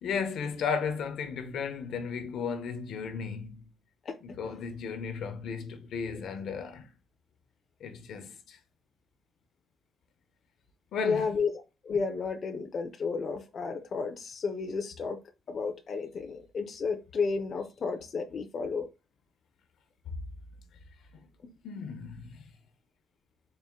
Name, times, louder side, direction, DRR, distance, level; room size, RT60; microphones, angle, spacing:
voice 1, 0.0-3.7 4.2-6.9 7.8-8.6 10.9-11.4 21.1-21.3 21.6-22.5, left 6 dB, 75° left, 0.7 m, -35 dB
voice 2, 11.0-11.5 11.8-15.2 15.5-18.9, left 5 dB, 45° left, 0.5 m, -32 dB
4.2 x 2.5 x 3.6 m
cardioid pair, 140°, 0 cm